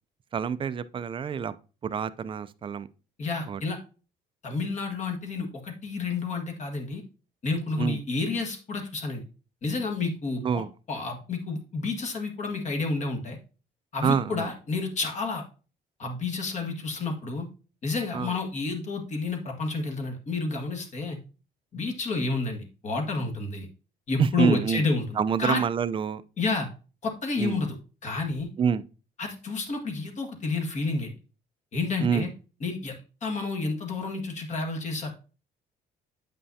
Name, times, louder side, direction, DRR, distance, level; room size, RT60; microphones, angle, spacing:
voice 1, 0.3-1.5 1.8-2.9 3.5-3.6 7.8-8.0 10.4-10.7 14.0-14.5 18.1-18.3 24.2-24.8 25.2-26.2 27.4-27.6 28.6-28.8 32.0-32.3, right 7 dB, 30° right, 0.5 m, -26 dB
voice 2, 3.2-3.8 4.4-7.0 7.4-9.2 9.6-13.4 13.9-15.4 16.0-17.5 17.8-21.2 21.7-23.7 24.1-25.6 26.4-26.7 27.0-27.8 28.0-28.5 29.2-31.1 31.7-32.3 32.6-35.1, left 3 dB, 45° left, 1.7 m, -30 dB
8.3 x 5.6 x 2.7 m
cardioid pair, 110°, 17 cm